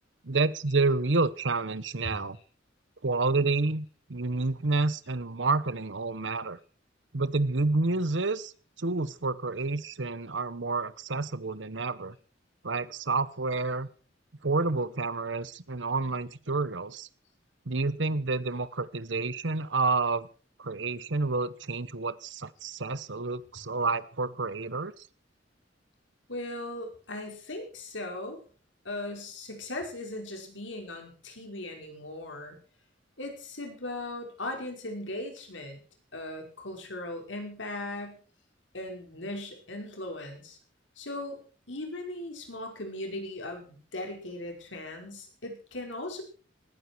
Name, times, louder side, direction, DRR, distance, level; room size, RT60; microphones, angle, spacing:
voice 1, 0.2-2.4 3.0-6.6 7.1-8.5 8.8-12.2 12.6-13.9 14.4-17.1 17.7-20.3 20.6-25.1, right 3 dB, 75° right, 16 dB, 1.1 m, -29 dB
voice 2, 26.3-28.4 28.9-32.6 33.2-35.8 36.1-38.2 38.7-40.6 41.0-41.4 41.7-46.2, left 1 dB, 85° left, 3 dB, 5.3 m, -38 dB
18.5 x 15.0 x 4.7 m, 0.40 s
head